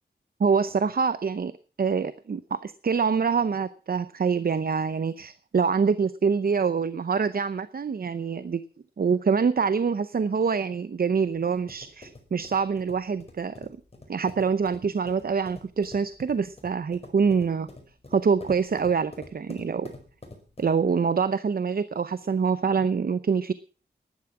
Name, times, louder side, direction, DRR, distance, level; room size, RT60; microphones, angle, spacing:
voice 1, 0.4-1.5 1.8-8.6 9.0-13.7 14.1-17.7 18.1-19.9 20.6-23.5, right 5 dB, 60° right, 13 dB, 0.8 m, -25 dB
sound 1, 11.5-20.9, left 2 dB, 35° left, 5.0 m, -48 dB
14.5 x 11.5 x 6.0 m, 0.39 s
wide cardioid pair, 95°, 17 cm